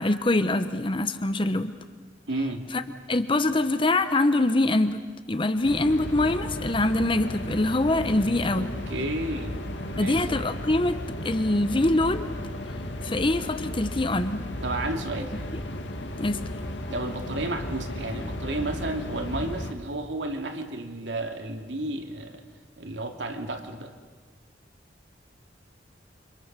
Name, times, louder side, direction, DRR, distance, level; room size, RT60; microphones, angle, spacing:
voice 1, 0.0-1.7 2.7-2.8 3.1-5.0 5.3-8.7 10.0-11.0 11.2-12.3 13.0-14.4 16.2-16.4, left 2 dB, 30° left, 10 dB, 0.9 m, -24 dB
voice 2, 2.3-2.6 8.5-9.6 9.9-10.3 14.6-15.3 16.9-22.4 22.8-23.9, right 2 dB, 90° right, 4 dB, 2.6 m, -32 dB
sound 1, 5.6-19.7, left 1 dB, 85° left, 1.9 m, -34 dB
29.0 x 26.0 x 6.8 m, 1.4 s
head